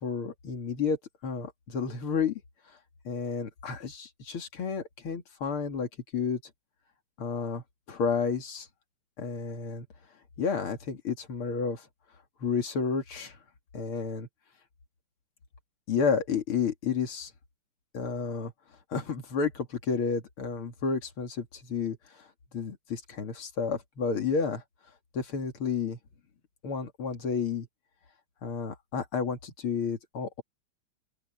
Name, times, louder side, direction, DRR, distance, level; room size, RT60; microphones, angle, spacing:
voice 1, 0.0-2.4 3.0-6.4 7.2-8.7 9.2-9.9 10.4-11.9 12.4-13.4 13.7-14.3 15.9-17.3 17.9-18.5 18.9-22.3 22.5-24.6 25.1-26.0 26.6-27.7 28.4-30.4, left 5 dB, 80° left, 3.2 m, -31 dB
open air
omnidirectional pair, 2.3 m